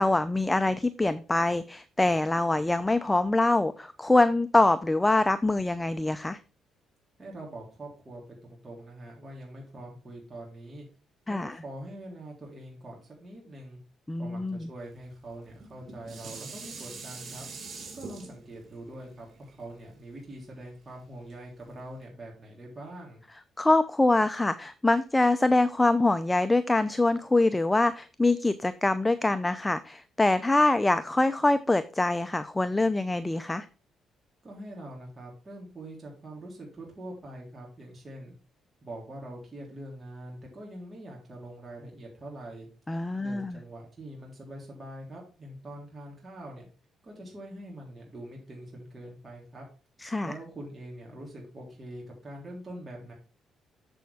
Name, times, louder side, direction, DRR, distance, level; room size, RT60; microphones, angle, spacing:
voice 1, 0.0-6.4 11.3-11.5 14.1-14.7 23.6-33.7 42.9-43.6 50.0-50.3, left 2 dB, 15° left, 12 dB, 0.5 m, -24 dB
voice 2, 7.2-10.9 11.3-13.8 14.2-17.4 17.9-23.2 34.4-38.3 38.8-42.7 43.2-46.7 47.0-49.7 50.2-53.1, right 1 dB, 30° right, -3 dB, 3.5 m, -44 dB
Dishes pots and pans, 15.5-20.8 21.3-21.4, right 4 dB, 55° right, 4.2 m, -44 dB
7.3 x 7.0 x 3.5 m, 0.37 s
cardioid pair, 90°, 0 cm